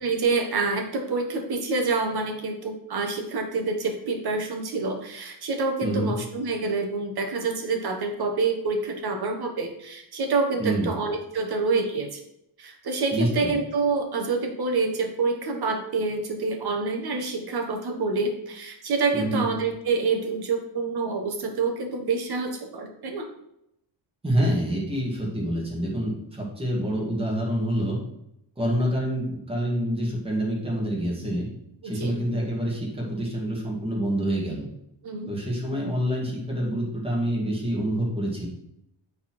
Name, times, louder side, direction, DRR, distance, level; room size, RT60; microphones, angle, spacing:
voice 1, 0.0-12.2 12.6-23.3 31.8-32.2 35.0-35.3, right 4 dB, 55° right, 3 dB, 1.5 m, -27 dB
voice 2, 5.8-6.1 10.6-10.9 13.1-13.5 19.1-19.4 24.2-28.0 28.6-31.5 31.8-34.7 35.3-38.5, right 1 dB, 10° right, -4 dB, 2.2 m, -27 dB
8.7 x 4.2 x 4.4 m, 0.81 s
cardioid pair, 150°, 47 cm